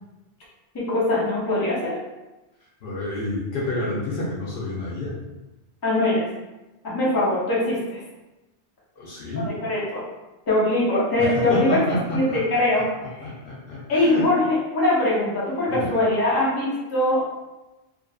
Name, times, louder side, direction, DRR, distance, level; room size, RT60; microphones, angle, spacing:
voice 1, 0.7-2.0 5.8-6.3 6.8-8.0 9.3-10.0 10.5-11.8 12.1-12.9 13.2-13.3 13.9-17.3, left 1 dB, 25° left, -7 dB, 0.5 m, -22 dB
voice 2, 2.8-5.1 9.0-9.5 11.2-12.4 13.2-14.3 15.7-16.0, left 1 dB, 60° left, -5 dB, 0.8 m, -28 dB
2.5 x 2.4 x 2.3 m, 1.0 s
omnidirectional pair, 1.2 m